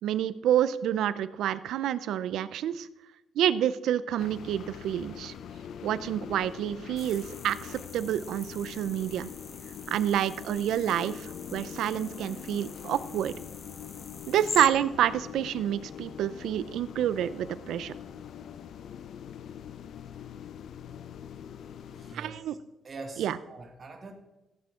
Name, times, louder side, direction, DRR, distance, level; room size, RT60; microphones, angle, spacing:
voice 1, 0.0-2.9 3.4-5.3 5.8-9.3 9.9-13.3 14.3-17.9 22.1-22.5 23.2-23.4, right 10 dB, 85° right, 15 dB, 0.6 m, -28 dB
sound 1, 4.2-22.2, left 8 dB, 70° left, 0.6 m, -43 dB
sound 2, 7.0-14.7, left 4 dB, 35° left, 1.1 m, -43 dB
voice 2, 21.9-22.6 22.8-24.1, right 3 dB, 40° right, 3 dB, 2.2 m, -44 dB
16.0 x 8.4 x 3.7 m, 1.0 s
cardioid pair, 100°, 0 cm